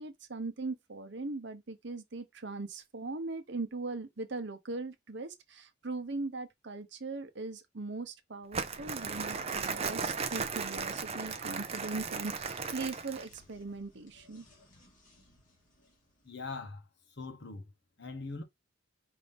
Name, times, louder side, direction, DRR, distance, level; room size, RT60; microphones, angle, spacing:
voice 1, 0.0-14.4, right 3 dB, 55° right, 0.9 m, -40 dB
Crumpling crinkling, 8.5-13.4, right 5 dB, 30° right, 0.5 m, -36 dB
sound 1, 10.8-16.4, left 1 dB, 40° left, 2.0 m, -63 dB
voice 2, 16.2-17.7 18.0-18.4, left 3 dB, 55° left, 1.1 m, -42 dB
5.3 x 2.8 x 3.4 m
head